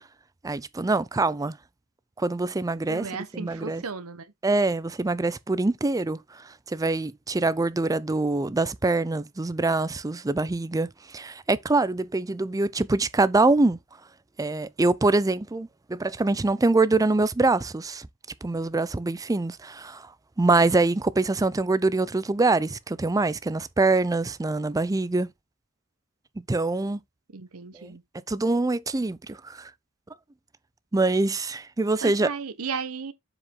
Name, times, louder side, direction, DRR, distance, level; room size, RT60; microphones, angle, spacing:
voice 1, 0.4-1.6 2.2-3.0 3.3-3.8 4.4-13.8 14.4-18.1 18.4-20.1 20.4-25.3 26.5-27.0 27.7-27.9 28.3-29.7 30.9-32.3, right 3 dB, 15° right, 0.4 m, -24 dB
voice 2, 2.9-4.3 27.3-28.0 32.0-33.1, right 5 dB, 80° right, 0.9 m, -35 dB
7.4 x 4.9 x 3.7 m
head